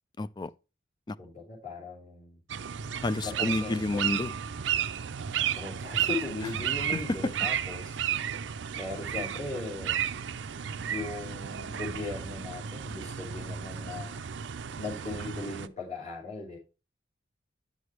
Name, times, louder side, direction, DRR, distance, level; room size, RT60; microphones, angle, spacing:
voice 1, 0.2-0.5 1.1-1.2 3.0-4.3 6.9-7.3, left 2 dB, 25° left, 0.3 m, -30 dB
voice 2, 1.2-2.4 3.2-4.0 5.5-8.0 8.8-10.0 10.9-14.2 14.8-16.6, left 3 dB, 40° left, 3.1 m, -38 dB
sound 1, 2.5-15.7, right 9 dB, 70° right, 0.5 m, -33 dB
10.5 x 6.3 x 3.3 m
head